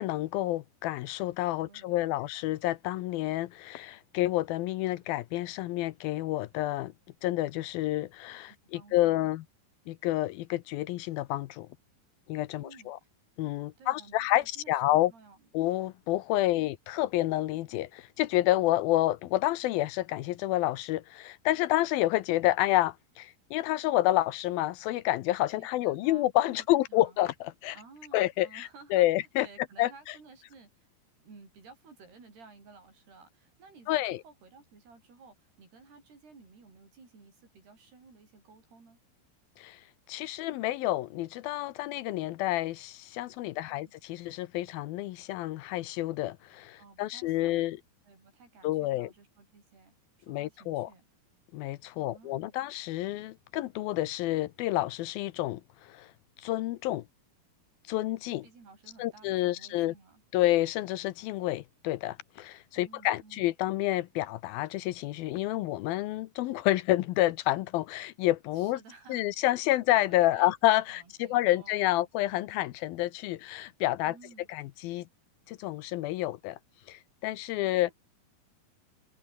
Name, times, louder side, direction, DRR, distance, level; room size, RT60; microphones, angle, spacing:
voice 1, 0.0-6.9 7.2-9.4 9.9-11.7 12.3-13.0 13.4-15.1 15.5-27.8 28.1-29.5 29.8-29.9 33.9-34.2 39.6-39.8 40.1-47.8 48.6-49.1 50.3-50.9 51.5-56.1 56.4-57.0 57.9-58.5 59.0-59.9 60.3-68.8 69.1-74.2 74.5-75.1 75.5-76.6 76.9-77.9, left 16 dB, 75° left, 2.4 m, -29 dB
voice 2, 1.6-2.2 8.7-9.3 12.6-12.9 13.8-15.5 16.4-16.6 25.6-27.2 27.7-30.9 31.2-39.0 43.5-43.9 46.8-47.6 48.0-49.9 50.2-51.1 52.0-52.5 58.4-60.2 62.8-63.5 68.5-69.3 70.1-70.5 70.9-72.1 74.0-74.5 77.6-77.9, right 4 dB, 80° right, 10.0 m, -55 dB
omnidirectional pair, 4.6 m